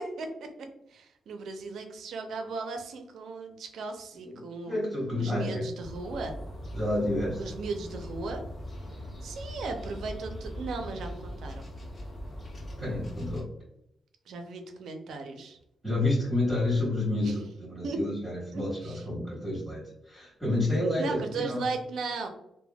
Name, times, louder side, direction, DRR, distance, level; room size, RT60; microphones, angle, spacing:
voice 1, 0.0-4.8 5.2-6.4 7.4-8.5 9.2-11.7 14.3-15.6 17.2-17.3 17.8-18.0 18.5-18.9 21.0-22.3, right 4 dB, 80° right, 5 dB, 0.4 m, -36 dB
voice 2, 4.2-5.6 6.7-7.5 12.8-13.4 15.8-21.7, left 2 dB, 5° left, -8 dB, 1.3 m, -29 dB
sound 1, 5.8-13.4, equal, 40° left, 0.9 m, -41 dB
3.3 x 2.1 x 2.2 m, 0.81 s
cardioid pair, 110°, 0 cm